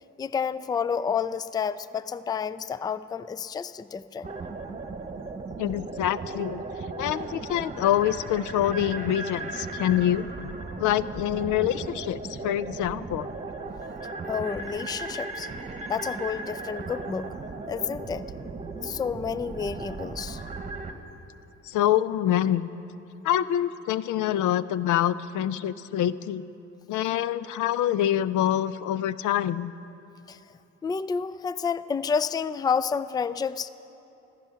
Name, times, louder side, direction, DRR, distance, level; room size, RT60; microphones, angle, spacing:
voice 1, 0.2-4.3 14.3-15.5 15.9-17.3 17.7-18.2 18.8-20.4 30.3-30.4 30.8-33.7, left 6 dB, 15° left, 15 dB, 0.3 m, -30 dB
sound 1, 4.2-20.9, right 3 dB, 25° right, 1.2 m, -36 dB
voice 2, 5.6-6.6 7.0-10.2 10.8-13.3 21.6-22.7 23.2-26.4 26.9-29.7, left 11 dB, 80° left, 16 dB, 0.5 m, -26 dB
15.5 x 14.0 x 5.7 m, 3.0 s
cardioid pair, 90°, 30 cm